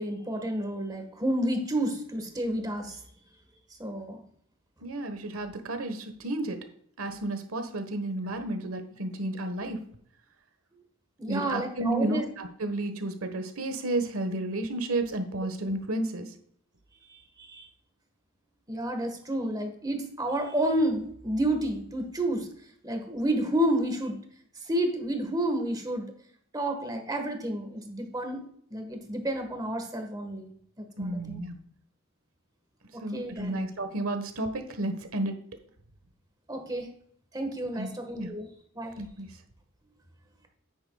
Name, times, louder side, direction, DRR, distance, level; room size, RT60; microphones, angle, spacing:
voice 1, 0.0-3.0 3.8-4.2 11.2-12.2 17.1-17.7 18.7-22.5 22.8-24.2 24.6-26.1 26.5-28.4 28.7-30.5 30.8-31.4 32.9-33.6 36.5-36.9 37.3-38.5 38.7-39.0, right 1 dB, 20° right, 4 dB, 1.4 m, -30 dB
voice 2, 4.8-6.6 7.0-9.8 11.3-16.3 31.0-31.6 33.0-35.4 37.8-37.9 38.2-38.3 39.0-39.3, right 2 dB, 80° right, 7 dB, 1.3 m, -32 dB
9.6 x 8.9 x 2.3 m, 0.64 s
head